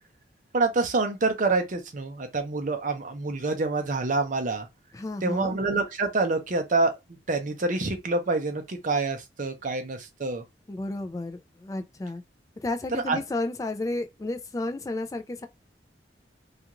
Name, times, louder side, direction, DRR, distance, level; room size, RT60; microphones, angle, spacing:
voice 1, 0.5-4.7 5.2-6.9 7.3-10.4 13.1-13.2, right 3 dB, 45° right, 0.6 m, -26 dB
voice 2, 4.9-5.5 10.7-12.2 12.6-15.5, left 2 dB, 20° left, 0.3 m, -32 dB
2.4 x 2.4 x 2.9 m
head